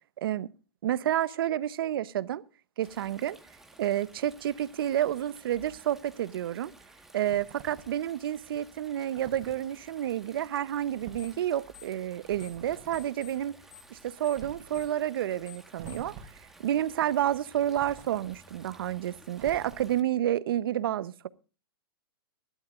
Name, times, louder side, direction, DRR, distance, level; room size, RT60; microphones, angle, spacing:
voice 1, 0.2-0.5 0.8-2.4 2.8-3.4 3.8-6.7 7.1-13.5 13.9-21.3, right 11 dB, 65° right, 0.8 m, -30 dB
Stream, 2.8-20.0, right 1 dB, 5° right, 1.4 m, -56 dB
sound 1, 7.2-8.0 9.1-9.6 10.8-11.4 12.3-13.1 14.3-14.9 15.8-16.5 17.7-18.4 19.3-20.1, right 5 dB, 35° right, 4.2 m, -48 dB
sound 2, 11.2-11.4 11.7-12.6 12.9-16.2, left 11 dB, 65° left, 4.6 m, -51 dB
23.5 x 12.0 x 2.5 m
hypercardioid pair, 140°, 13 cm